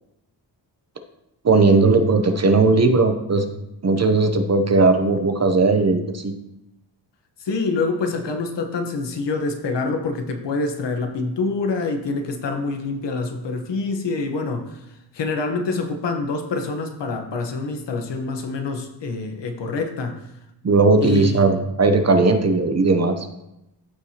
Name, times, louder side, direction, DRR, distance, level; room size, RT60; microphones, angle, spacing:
voice 1, 1.4-3.5 3.8-6.3 20.6-23.3, right 3 dB, 35° right, 7 dB, 0.7 m, -17 dB
voice 2, 7.4-14.8 15.1-20.3 21.0-21.5, left 3 dB, 65° left, 5 dB, 1.2 m, -26 dB
13.5 x 4.6 x 2.9 m, 0.88 s
wide cardioid pair, 115°, 45 cm